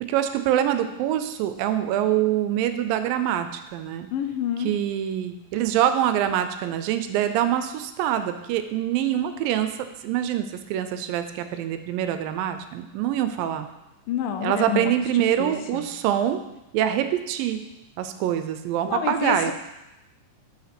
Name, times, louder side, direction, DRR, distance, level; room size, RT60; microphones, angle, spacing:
voice 1, 0.1-4.1 4.6-9.7 10.0-13.7 14.4-16.4 16.7-17.6 18.0-19.5, right 11 dB, 85° right, 9 dB, 2.3 m, -25 dB
voice 2, 4.1-4.7 14.1-15.9 18.8-19.5, left 9 dB, 80° left, 6 dB, 2.3 m, -29 dB
5.7 x 5.6 x 5.9 m, 0.94 s
omnidirectional pair, 4.0 m